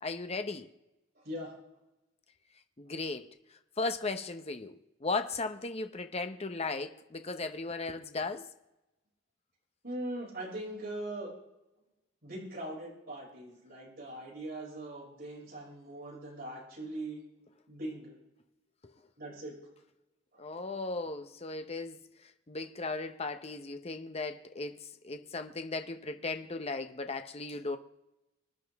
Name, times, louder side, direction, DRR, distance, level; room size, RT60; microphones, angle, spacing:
voice 1, 0.0-0.7 2.8-3.3 3.8-8.5 20.4-22.0 22.5-27.8, left 3 dB, 35° left, 0.9 m, -36 dB
voice 2, 9.8-11.3 12.2-17.2 17.7-18.1 19.2-19.5, right 1 dB, 55° right, 6.2 m, -41 dB
25.5 x 10.0 x 3.6 m
head